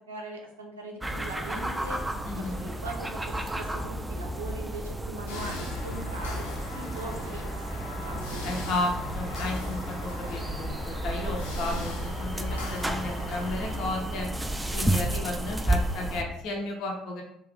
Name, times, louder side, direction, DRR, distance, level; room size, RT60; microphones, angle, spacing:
voice 1, 0.1-2.0 2.4-6.5 6.7-7.4 7.7-8.6, right 2 dB, 85° right, 0 dB, 0.5 m, -41 dB
sound 1, 1.0-16.2, right 1 dB, 10° right, 0.3 m, -32 dB
voice 2, 2.2-2.7 8.4-14.3 14.7-17.2, left 2 dB, 60° left, 1 dB, 0.5 m, -33 dB
sound 2, 5.3-13.9, left 2 dB, 85° left, 0.8 m, -39 dB
2.4 x 2.3 x 3.4 m, 0.78 s
figure-of-eight pair, 60°, 0 cm